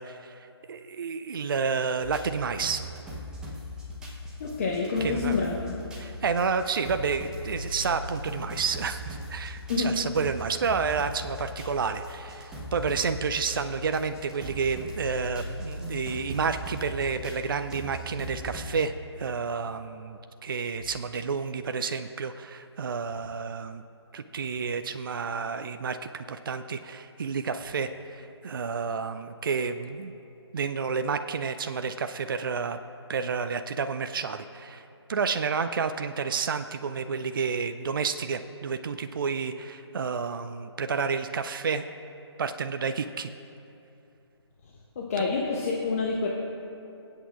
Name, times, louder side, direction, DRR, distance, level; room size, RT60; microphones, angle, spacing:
voice 1, 0.0-2.8 5.0-5.4 6.0-18.9 19.2-23.8 24.1-30.1 30.5-32.8 33.1-41.8 42.4-43.3, right 5 dB, 50° right, 9 dB, 0.4 m, -30 dB
sound 1, 2.0-18.8, equal, 5° right, 0.7 m, -39 dB
voice 2, 4.4-5.8 9.7-9.9 45.0-46.3, left 4 dB, 30° left, -1 dB, 0.8 m, -27 dB
23.5 x 8.2 x 2.4 m, 2.7 s
figure-of-eight pair, 150°, 15 cm